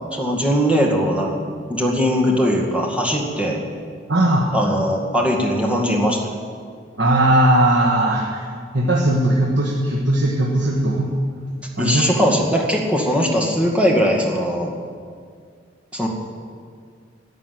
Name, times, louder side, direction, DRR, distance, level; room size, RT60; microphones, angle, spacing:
voice 1, 0.1-1.4 1.7-3.6 4.5-6.4 11.8-14.7 15.9-16.1, equal, 5° right, -1 dB, 2.1 m, -20 dB
voice 2, 4.1-4.5 7.0-8.4 8.7-11.1 11.8-12.0, right 1 dB, 70° right, -2 dB, 1.5 m, -18 dB
12.5 x 10.5 x 9.3 m, 2.1 s
head